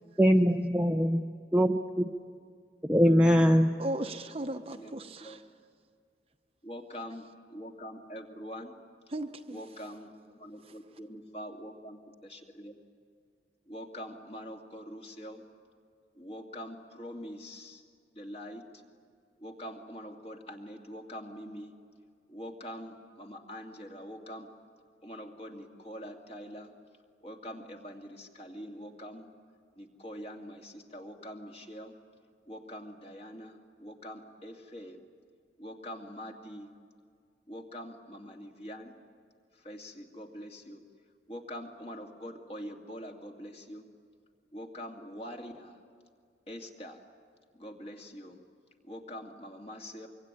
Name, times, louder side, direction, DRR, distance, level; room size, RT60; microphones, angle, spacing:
voice 1, 0.2-1.2 1.5-1.7 2.8-3.7, equal, 5° right, 2 dB, 0.7 m, -22 dB
voice 2, 3.8-5.4 9.1-9.6, right 1 dB, 35° right, 6 dB, 1.0 m, -36 dB
voice 3, 6.6-8.7 9.5-10.1 10.4-12.0 12.2-12.8 13.7-15.4 16.2-17.8 18.2-18.6 19.4-21.7 22.3-24.5 25.0-26.7 27.2-29.3 29.8-31.9 32.5-33.5 33.8-35.0 35.6-36.7 37.5-38.9 39.6-40.8 41.3-43.8 44.5-45.8 46.5-47.0 47.6-48.4 48.9-50.1, equal, 35° left, 2 dB, 2.4 m, -44 dB
25.0 x 24.0 x 9.9 m, 2.1 s
head